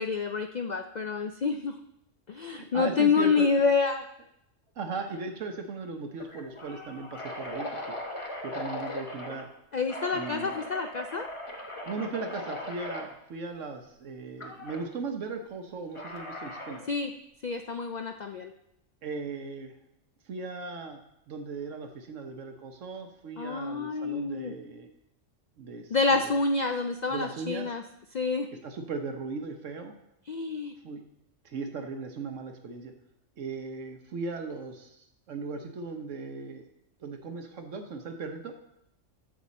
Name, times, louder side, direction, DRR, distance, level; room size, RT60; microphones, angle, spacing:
voice 1, 0.0-1.8 2.3-4.0 9.7-11.3 16.9-17.1 17.4-18.5 23.4-24.5 25.9-27.8 28.1-28.5 30.3-30.7, left 4 dB, 75° left, 6 dB, 0.4 m, -28 dB
voice 2, 2.5-3.5 4.8-8.0 8.4-9.5 10.1-10.6 11.8-16.8 19.0-19.7 20.2-24.9 25.6-26.4 27.1-27.7 28.6-29.9 30.8-31.0 31.4-32.9 33.4-36.6 37.0-38.5, right 4 dB, 70° right, 5 dB, 1.2 m, -38 dB
sound 1, 4.9-5.2 5.5-5.6 6.2-9.4 9.9-13.1 14.4-14.8 15.9-16.9, left 1 dB, 25° left, 1.1 m, -39 dB
13.5 x 5.8 x 4.1 m, 0.81 s
omnidirectional pair, 1.3 m